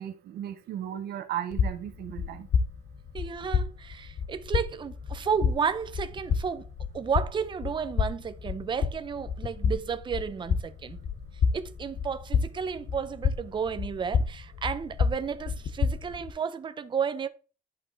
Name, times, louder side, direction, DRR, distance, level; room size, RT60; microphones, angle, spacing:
voice 1, 0.0-2.5, right 10 dB, 80° right, 1.3 m, -35 dB
sound 1, 1.5-16.3, left 6 dB, 45° left, 0.9 m, -30 dB
voice 2, 3.1-6.7 6.9-11.0 11.5-17.3, right 6 dB, 30° right, 0.7 m, -32 dB
11.0 x 5.3 x 4.0 m
cardioid pair, 140°, 16 cm